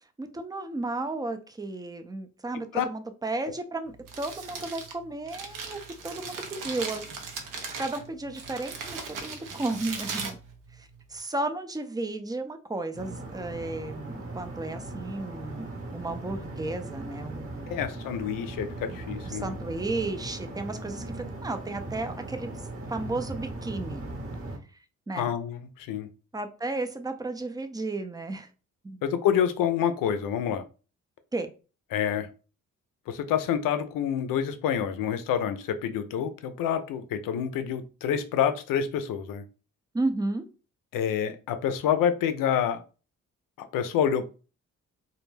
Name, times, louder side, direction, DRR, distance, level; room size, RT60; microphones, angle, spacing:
voice 1, 0.2-7.0 7.8-10.4 10.7-17.8 19.2-24.0 24.7-24.8 25.1-25.3 26.3-28.5 28.8-29.0 31.3-31.5 39.9-40.5, right 2 dB, 10° right, 7 dB, 0.4 m, -33 dB
Crumpling crinkling, 3.9-11.2, right 5 dB, 70° right, 0.7 m, -38 dB
sound 1, 12.9-24.6, right 2 dB, 40° right, 0.9 m, -38 dB
voice 2, 17.7-19.5 25.2-26.1 29.0-30.6 31.9-32.3 33.1-39.4 40.9-42.8 43.6-44.2, left 8 dB, 75° left, 10 dB, 0.5 m, -27 dB
2.2 x 2.1 x 3.1 m, 0.34 s
supercardioid pair, 60°, 33 cm